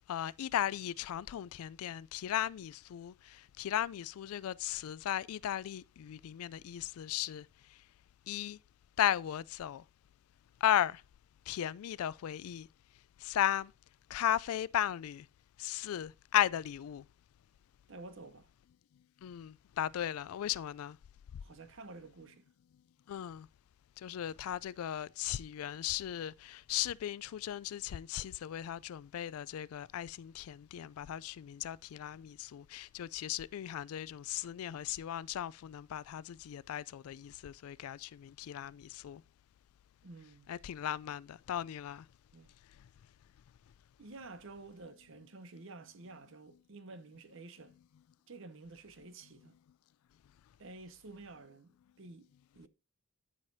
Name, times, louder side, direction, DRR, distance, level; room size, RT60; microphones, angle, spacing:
voice 1, 0.1-7.5 8.3-8.6 9.0-9.8 10.6-11.0 11.5-12.7 13.2-13.7 14.1-15.3 15.6-17.0 19.2-21.0 23.1-23.5 24.0-39.2 40.5-42.1, left 11 dB, 80° left, 0.3 m, -36 dB
voice 2, 17.9-18.5 21.4-22.5 40.0-40.5 42.3-42.5 44.0-47.7 48.3-49.6 50.6-52.7, right 3 dB, 60° right, 0.8 m, -51 dB
13.0 x 4.9 x 2.6 m
head